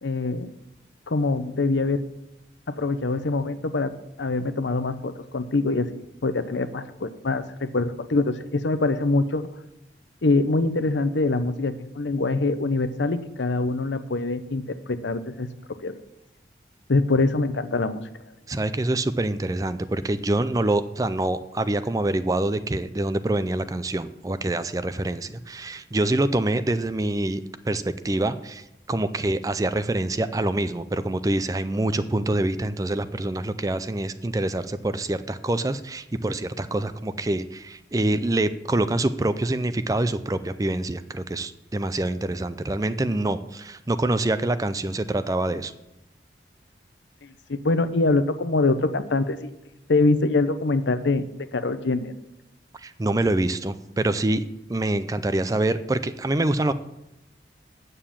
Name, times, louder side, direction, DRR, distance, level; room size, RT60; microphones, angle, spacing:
voice 1, 0.0-0.5 1.1-2.0 2.8-3.9 4.2-9.5 10.2-15.5 15.8-16.0 16.9-18.0 47.5-49.5 49.9-51.2 51.5-52.1, left 3 dB, 85° left, 11 dB, 0.7 m, -24 dB
voice 2, 18.5-45.7 52.7-56.7, right 2 dB, 20° right, 13 dB, 0.4 m, -26 dB
9.2 x 6.8 x 7.2 m, 0.92 s
head